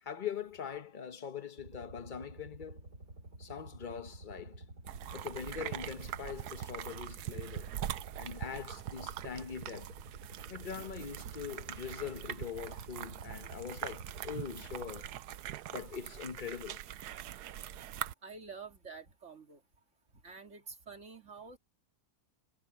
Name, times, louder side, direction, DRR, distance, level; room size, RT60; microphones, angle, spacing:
voice 1, 0.0-2.8 3.4-4.6 5.1-7.7 8.2-9.9 10.5-15.1 15.7-16.9, left 7 dB, 35° left, 1.0 m, -42 dB
sound 1, 1.6-15.1, right 2 dB, 65° right, 4.7 m, -51 dB
sound 2, 4.9-18.1, right 12 dB, 90° right, 1.3 m, -43 dB
voice 2, 18.2-19.6 20.2-21.6, right 4 dB, 50° right, 2.4 m, -48 dB
omnidirectional pair, 1.7 m